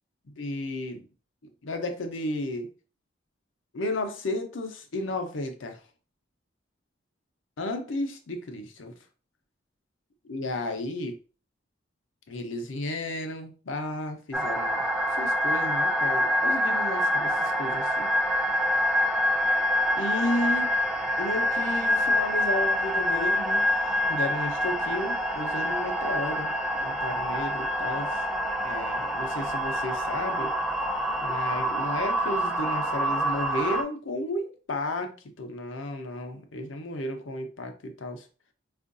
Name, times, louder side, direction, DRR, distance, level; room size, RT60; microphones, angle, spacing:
voice 1, 0.3-1.1 1.4-2.7 3.7-5.8 7.6-8.9 10.3-11.2 12.3-14.8 15.2-18.1 20.0-20.7 21.2-28.2 28.6-30.5 31.2-38.3, left 1 dB, 90° left, 5 dB, 0.7 m, -33 dB
sound 1, 14.3-33.8, equal, ahead, 0.5 m, -26 dB
4.4 x 2.5 x 2.5 m, 0.37 s
head